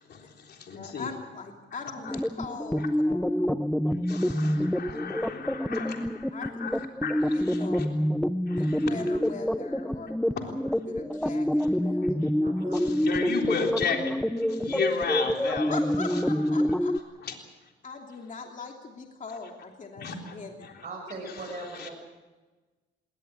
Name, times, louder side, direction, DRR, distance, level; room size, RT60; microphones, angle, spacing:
voice 1, 0.1-1.1 4.0-7.9 8.5-8.9 12.7-15.7 17.3-17.4 20.0-20.3 21.3-21.5 21.8-21.9, left 5 dB, 55° left, 2 dB, 3.7 m, -34 dB
voice 2, 0.7-3.6 5.8-6.0 6.3-6.5 7.1-7.9 8.8-12.2 15.7-16.9 17.8-20.7, left 4 dB, 40° left, 2 dB, 3.0 m, -41 dB
sound 1, 2.0-17.0, equal, 5° left, 0.7 m, -27 dB
voice 3, 12.4-13.0 20.8-21.9, right 2 dB, 40° right, -3 dB, 6.5 m, -39 dB
20.0 x 19.0 x 8.3 m, 1.3 s
cardioid pair, 90°, 20 cm